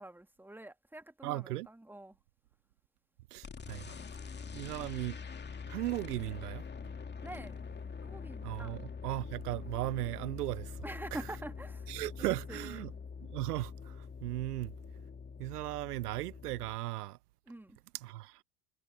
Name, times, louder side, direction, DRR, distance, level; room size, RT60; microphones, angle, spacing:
voice 1, 0.0-2.2 4.4-4.6 7.2-7.6 8.0-8.8 10.8-12.9 17.5-17.8, right 1 dB, 5° right, 2.3 m, -46 dB
voice 2, 1.2-1.7 3.3-4.0 4.5-5.2 5.7-6.6 8.4-10.8 11.9-12.9 13.3-14.7 15.4-17.2 17.9-18.4, right 17 dB, 70° right, 0.8 m, -37 dB
sound 1, 3.4-16.8, left 5 dB, 20° left, 2.5 m, -44 dB
figure-of-eight pair, 70°, 49 cm